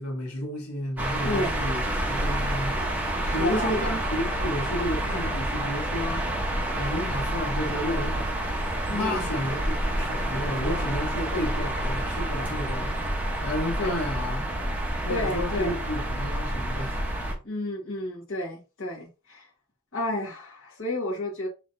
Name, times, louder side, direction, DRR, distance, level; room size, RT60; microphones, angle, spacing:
voice 1, 0.0-1.8 2.1-2.8 3.3-6.3 6.7-8.4 8.9-12.9 13.4-14.5 15.0-17.0, left 1 dB, 80° left, 1.6 m, -31 dB
sound 1, 1.0-17.3, right 1 dB, 10° right, 0.9 m, -28 dB
voice 2, 3.2-3.9 8.9-9.3 13.8-14.0 15.1-15.8 17.4-19.5 19.9-21.5, left 1 dB, 65° left, 1.5 m, -31 dB
5.5 x 3.1 x 2.6 m
head